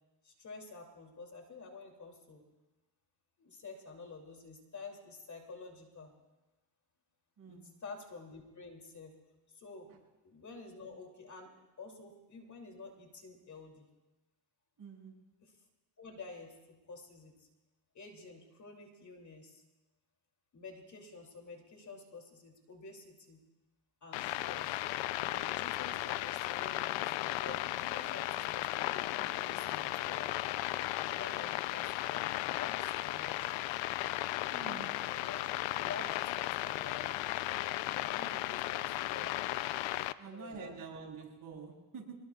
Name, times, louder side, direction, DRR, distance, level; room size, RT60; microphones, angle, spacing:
voice 1, 0.2-2.4 3.4-6.1 7.5-9.1 9.5-9.9 10.2-11.5 11.8-13.8 15.4-15.5 16.0-17.5 17.9-19.6 20.5-23.4 24.0-24.8 25.3-30.5 31.0-33.6 35.1-37.2 37.9-39.6 40.2-40.8, left 4 dB, 35° left, 2 dB, 2.9 m, -49 dB
voice 2, 7.4-7.7 9.9-10.0 14.8-15.1 34.5-34.9 40.2-42.1, right 5 dB, 45° right, -1 dB, 6.5 m, -47 dB
sound 1, 24.1-40.1, left 16 dB, 70° left, 0.7 m, -35 dB
26.0 x 20.5 x 2.4 m, 1.1 s
cardioid pair, 95°, 47 cm